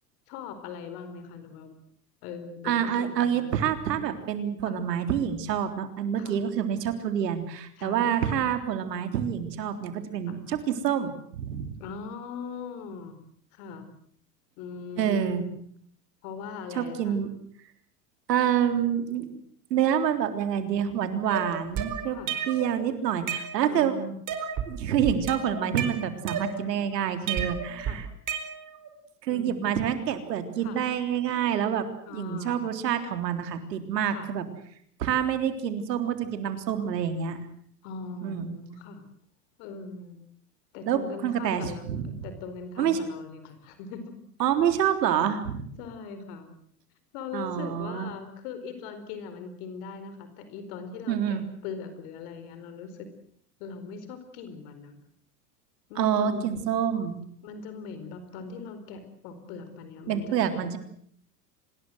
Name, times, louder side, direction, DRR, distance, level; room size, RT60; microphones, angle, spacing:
voice 1, 0.3-1.8 2.2-3.5 4.6-4.8 6.2-6.4 7.8-8.4 10.3-10.4 11.8-13.2 13.5-13.9 14.6-15.6 16.2-17.2 22.1-22.3 23.7-24.2 27.8-28.0 29.3-29.7 30.6-30.8 32.0-32.7 34.1-34.3 37.8-39.0 39.6-40.2 40.7-44.2 45.8-46.5 47.1-53.1 53.6-55.0 55.9-56.5 57.4-60.7, left 5 dB, 60° left, 10 dB, 4.7 m, -40 dB
voice 2, 2.6-11.7 15.0-15.4 16.8-17.3 18.3-19.4 19.7-22.2 22.5-24.0 24.7-28.1 29.2-31.8 32.1-34.4 35.0-37.4 38.2-38.5 40.9-42.0 42.8-43.0 44.4-45.6 47.3-48.1 51.1-51.5 56.0-57.2 60.1-60.8, right 9 dB, 80° right, 8 dB, 3.7 m, -27 dB
sound 1, 21.3-22.7 23.1-23.9 24.3-24.7 25.1-26.8 27.3-28.9, right 7 dB, 40° right, 4.4 m, -32 dB
25.5 x 20.5 x 7.9 m, 0.63 s
hypercardioid pair, 95°, 48 cm